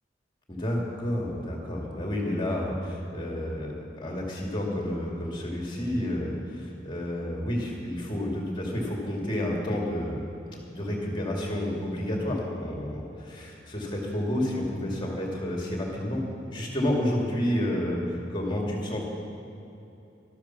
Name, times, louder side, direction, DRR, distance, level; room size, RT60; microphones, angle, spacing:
voice 1, 0.5-10.2 10.5-16.2 16.5-19.1, left 1 dB, 30° left, -1 dB, 2.4 m, -30 dB
13.0 x 12.0 x 6.0 m, 2.8 s
head